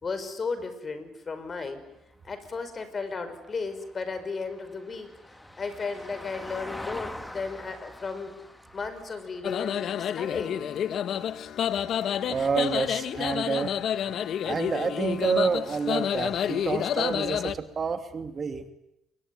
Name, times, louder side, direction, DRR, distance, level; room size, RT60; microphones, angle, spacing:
voice 1, 0.0-1.8 2.2-5.1 5.6-8.3 8.7-10.6, left 4 dB, 40° left, 11 dB, 5.7 m, -34 dB
Vehicle, 1.4-11.9 14.2-14.3, left 1 dB, 10° left, 2.6 m, -45 dB
sound 1, 9.4-17.5, left 9 dB, 65° left, 1.2 m, -29 dB
voice 2, 12.3-13.8 14.4-18.6, right 5 dB, 40° right, 7 dB, 2.8 m, -28 dB
26.0 x 23.0 x 9.7 m, 0.86 s
supercardioid pair, 80°, 0 cm